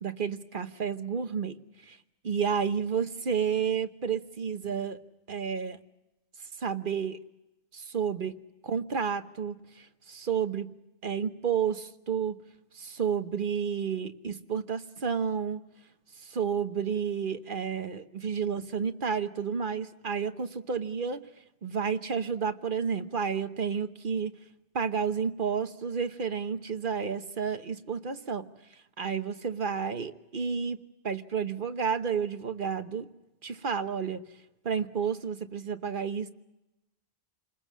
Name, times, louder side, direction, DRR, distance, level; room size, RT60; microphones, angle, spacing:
voice 1, 0.0-1.6 1.9-2.0 2.2-5.0 5.3-5.8 6.6-7.2 7.7-8.4 8.6-10.7 11.0-12.4 12.7-15.6 16.2-21.2 21.6-24.3 24.7-28.5 29.0-33.1 33.4-34.2 34.6-36.3, right 6 dB, 50° right, 9 dB, 1.2 m, -31 dB
28.5 x 20.5 x 7.4 m, 0.95 s
omnidirectional pair, 1.2 m